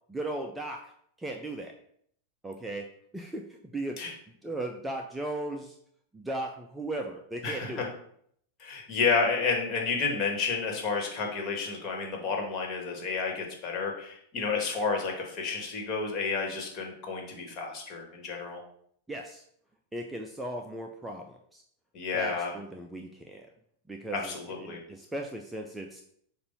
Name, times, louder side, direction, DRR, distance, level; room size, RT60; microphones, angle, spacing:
voice 1, 0.1-0.9 1.2-1.7 2.4-2.9 3.1-4.0 4.4-5.8 6.1-7.9 19.1-19.4 19.9-21.6 22.1-23.5 23.9-26.0, right 1 dB, 5° right, 3 dB, 0.6 m, -37 dB
voice 2, 7.4-7.9 8.6-18.6 21.9-22.6 24.1-24.8, left 4 dB, 35° left, 1 dB, 1.8 m, -31 dB
6.8 x 2.7 x 5.5 m, 0.67 s
figure-of-eight pair, 90°, 0 cm